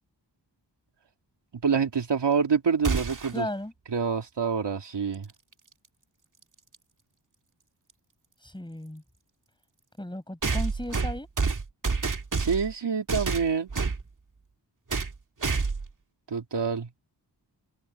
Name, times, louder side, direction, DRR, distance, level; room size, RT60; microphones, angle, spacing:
voice 1, 1.5-3.5 3.9-5.3 12.4-13.7 16.3-16.9, right 6 dB, 75° right, 2.6 m, -26 dB
sound 1, 2.8-3.4 5.5-5.6 6.7-6.8 10.4-12.7 13.1-14.0 14.9-15.2 15.4-15.9, right 4 dB, 45° right, 2.2 m, -28 dB
voice 2, 3.3-3.7 8.4-9.0 10.0-11.3, left 1 dB, 10° left, 6.2 m, -35 dB
wide cardioid pair, 110°, 42 cm